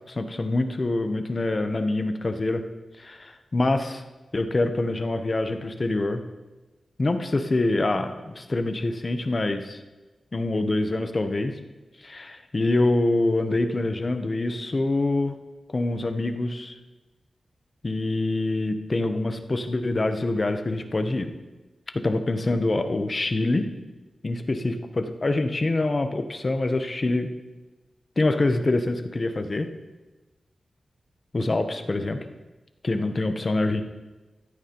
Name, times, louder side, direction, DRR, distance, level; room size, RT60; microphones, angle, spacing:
voice 1, 0.1-2.6 3.0-4.0 4.3-6.2 7.0-9.8 10.3-11.5 12.0-15.3 15.7-16.8 17.8-21.3 21.9-23.7 24.2-27.3 28.2-29.7 31.3-32.2 32.8-33.8, left 2 dB, 30° left, 7 dB, 0.7 m, -25 dB
14.5 x 13.0 x 2.9 m, 1.2 s
wide cardioid pair, 145°, 0 cm